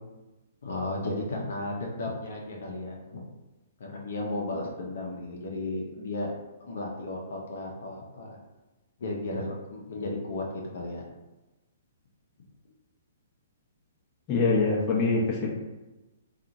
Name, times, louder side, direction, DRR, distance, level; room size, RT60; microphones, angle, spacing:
voice 1, 0.6-3.2 3.8-8.4 9.0-11.1, left 2 dB, 70° left, -1 dB, 0.7 m, -34 dB
voice 2, 14.3-15.5, left 3 dB, 30° left, -4 dB, 0.7 m, -24 dB
2.8 x 2.4 x 2.6 m, 1.1 s
hypercardioid pair, 140°, 0 cm